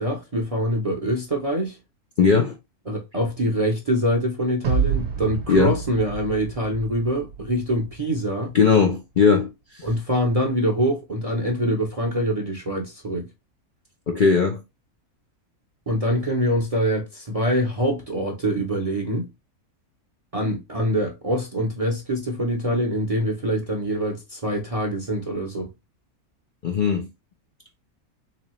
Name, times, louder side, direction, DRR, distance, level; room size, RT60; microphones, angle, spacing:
voice 1, 0.0-1.8 2.9-8.5 9.8-13.3 15.9-19.3 20.3-25.7, equal, 35° right, 0.6 m, -24 dB
voice 2, 2.2-2.5 5.5-5.8 8.5-9.5 9.7-9.8 14.1-14.6 26.6-27.1, left 5 dB, 55° left, 0.6 m, -18 dB
sound 1, 4.6-7.9, right 6 dB, 55° right, 1.0 m, -28 dB
3.7 x 3.1 x 3.0 m
omnidirectional pair, 1.5 m